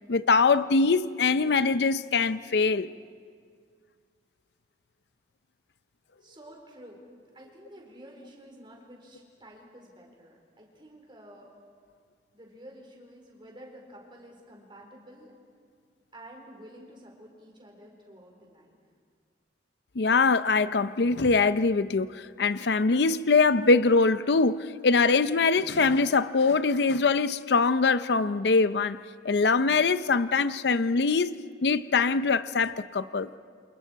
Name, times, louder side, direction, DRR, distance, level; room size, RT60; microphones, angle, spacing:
voice 1, 0.1-2.9 20.0-29.0 29.2-31.3 31.6-33.4, left 4 dB, 65° left, 0.6 m, -23 dB
voice 2, 6.2-7.0 7.3-11.5 12.3-15.3 16.1-18.8, equal, 30° right, 4.5 m, -50 dB
28.5 x 27.0 x 4.7 m
head